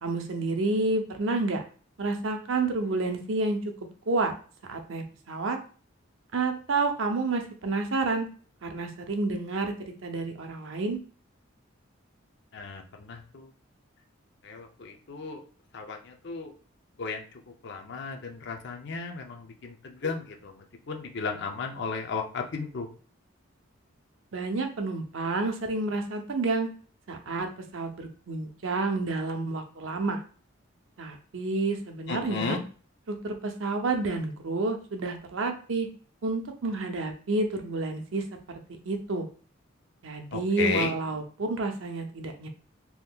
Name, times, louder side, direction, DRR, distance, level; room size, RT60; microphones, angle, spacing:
voice 1, 0.0-1.6 2.0-3.6 4.1-4.3 4.7-5.6 6.3-8.3 8.6-9.7 10.0-11.0 24.3-26.7 27.1-30.2 31.0-32.6 33.1-35.9 36.2-38.2 38.7-39.3 40.0-42.5, right 3 dB, 70° right, 5 dB, 0.6 m, -29 dB
voice 2, 12.5-13.5 14.4-15.4 15.7-16.5 17.0-17.2 17.6-22.9 32.1-32.6 40.3-41.0, left 4 dB, 55° left, 4 dB, 0.5 m, -34 dB
3.5 x 2.9 x 2.3 m, 0.40 s
head